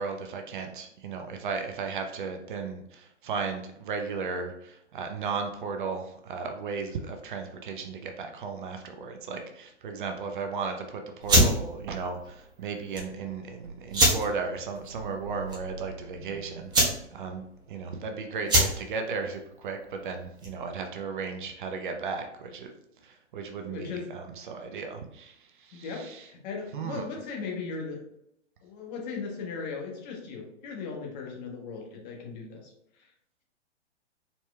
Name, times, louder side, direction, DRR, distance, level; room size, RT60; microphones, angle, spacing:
voice 1, 0.0-22.7 23.0-25.3 25.7-26.2 26.7-27.0, right 5 dB, 45° right, 5 dB, 0.6 m, -35 dB
sound 1, 11.2-20.7, equal, 10° right, 1.2 m, -27 dB
voice 2, 23.6-24.1 25.7-28.0 28.6-32.7 33.0-33.1, left 5 dB, 40° left, 0 dB, 1.3 m, -38 dB
4.2 x 4.2 x 2.3 m, 0.75 s
figure-of-eight pair, 115°, 35 cm